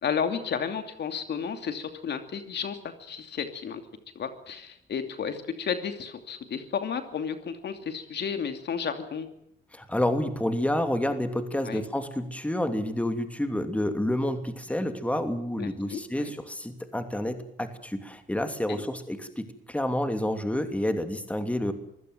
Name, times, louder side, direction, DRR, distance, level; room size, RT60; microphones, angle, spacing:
voice 1, 0.0-3.8 4.1-9.3 11.6-11.8 15.6-16.3 18.7-18.8, left 7 dB, 60° left, 7 dB, 2.8 m, -32 dB
voice 2, 9.7-21.7, left 1 dB, 5° left, 7 dB, 2.9 m, -29 dB
24.5 x 16.5 x 9.3 m, 0.72 s
cardioid pair, 90°, 20 cm